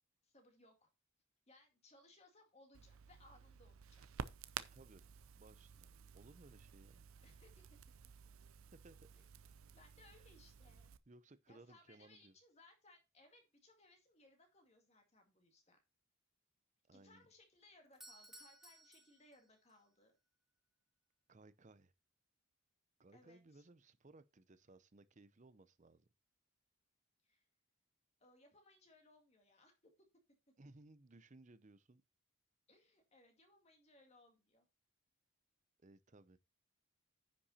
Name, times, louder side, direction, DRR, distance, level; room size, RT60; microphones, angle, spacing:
voice 1, 0.2-0.9 1.5-4.1 7.2-7.8 9.2-9.3 9.7-10.9 11.5-15.8 16.9-20.1 23.1-23.6 27.2-27.5 28.2-29.9 32.7-34.7, left 2 dB, 30° left, 2.1 m, -66 dB
Crackle, 2.7-11.0, right 6 dB, 70° right, 0.6 m, -53 dB
voice 2, 4.6-5.1 5.3-7.1 8.7-9.0 10.2-10.3 11.1-12.3 16.9-17.3 21.3-21.9 23.0-26.1 30.6-32.0 35.8-36.4, right 2 dB, 35° right, 0.6 m, -62 dB
Doorbell, 17.9-19.8, right 1 dB, ahead, 0.9 m, -60 dB
9.9 x 5.9 x 4.1 m
head